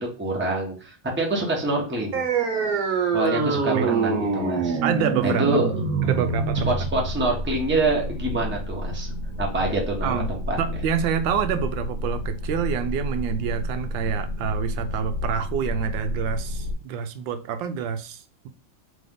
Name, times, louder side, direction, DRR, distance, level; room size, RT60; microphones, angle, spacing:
voice 1, 0.2-2.2 3.1-4.8 5.2-5.7 6.7-9.1 9.4-10.6, right 2 dB, 10° right, 0.9 m, -26 dB
sound 1, 2.1-9.1, right 5 dB, 55° right, 1.2 m, -25 dB
voice 2, 3.4-3.8 4.8-5.5 6.0-6.7 10.0-10.3 10.6-18.5, right 7 dB, 80° right, 1.3 m, -27 dB
sound 2, 6.0-16.7, left 1 dB, 45° left, 0.9 m, -31 dB
3.5 x 3.4 x 3.7 m
omnidirectional pair, 2.1 m